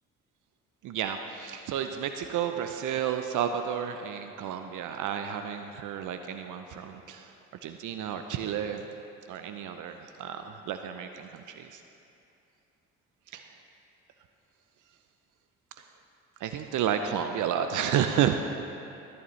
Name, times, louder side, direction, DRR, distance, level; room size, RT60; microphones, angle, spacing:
voice 1, 0.8-7.3 7.6-8.8 9.3-11.8 13.3-13.5 16.4-18.3, right 9 dB, 60° right, 7 dB, 0.6 m, -31 dB
14.0 x 8.8 x 3.2 m, 2.7 s
hypercardioid pair, 60°, 34 cm